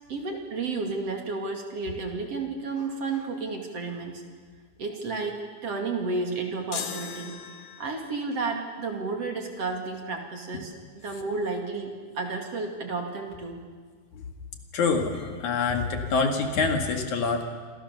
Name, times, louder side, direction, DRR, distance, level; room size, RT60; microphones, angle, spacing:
voice 1, 0.1-4.2 4.8-7.3 7.8-13.6, right 3 dB, 45° right, 3 dB, 3.1 m, -32 dB
sound 1, 6.7-8.2, left 8 dB, 85° left, 3.4 m, -37 dB
voice 2, 14.7-17.4, left 4 dB, 60° left, 4 dB, 3.3 m, -25 dB
28.5 x 25.5 x 7.0 m, 1.5 s
omnidirectional pair, 4.1 m